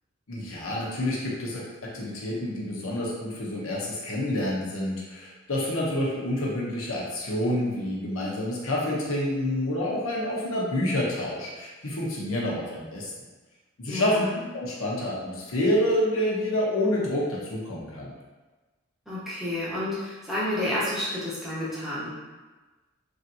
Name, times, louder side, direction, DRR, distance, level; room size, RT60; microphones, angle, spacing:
voice 1, 0.3-1.6 1.9-13.1 13.8-14.3 14.5-18.1, left 1 dB, 90° left, -4 dB, 0.8 m, -28 dB
voice 2, 13.9-14.4 19.1-22.1, left 1 dB, ahead, -10 dB, 0.9 m, -30 dB
3.2 x 2.7 x 2.7 m, 1.2 s
head